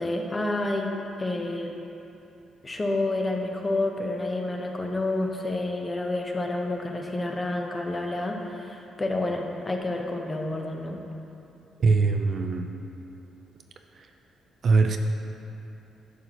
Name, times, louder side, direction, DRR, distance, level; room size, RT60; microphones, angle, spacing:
voice 1, 0.0-1.7 2.6-11.0, left 2 dB, 25° left, 2 dB, 0.9 m, -29 dB
voice 2, 11.8-12.7 14.0-14.1 14.6-15.0, right 4 dB, 55° right, 5 dB, 0.5 m, -22 dB
11.0 x 6.6 x 3.0 m, 2.8 s
cardioid pair, 90°, 0 cm